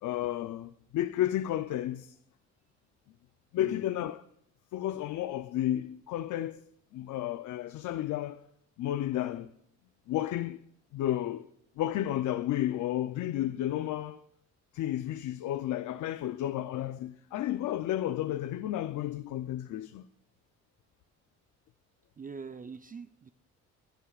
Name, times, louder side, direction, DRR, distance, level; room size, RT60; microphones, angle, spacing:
voice 1, 0.0-2.2 3.5-4.2 4.7-6.6 6.9-8.4 8.8-9.5 10.1-10.6 10.9-11.5 11.8-14.2 14.7-20.1, left 13 dB, 75° left, 0.6 m, -32 dB
voice 2, 22.2-23.3, right 5 dB, 30° right, 0.6 m, -43 dB
22.5 x 13.0 x 2.4 m
cardioid pair, 90°, 30 cm